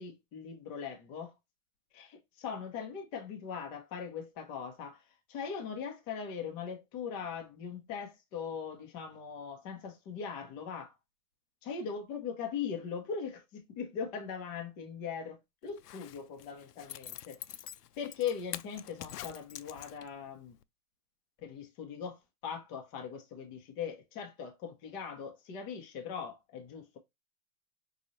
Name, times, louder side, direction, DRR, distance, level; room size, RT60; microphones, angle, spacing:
voice 1, 0.0-1.3 1.9-5.0 5.3-10.9 11.6-17.4 18.0-20.6 21.4-27.0, left 7 dB, 10° left, 0.3 m, -40 dB
Zipper (clothing), 15.7-20.3 20.6-20.7, left 12 dB, 85° left, 0.5 m, -46 dB
5.1 x 2.7 x 2.8 m
hypercardioid pair, 125°, 46 cm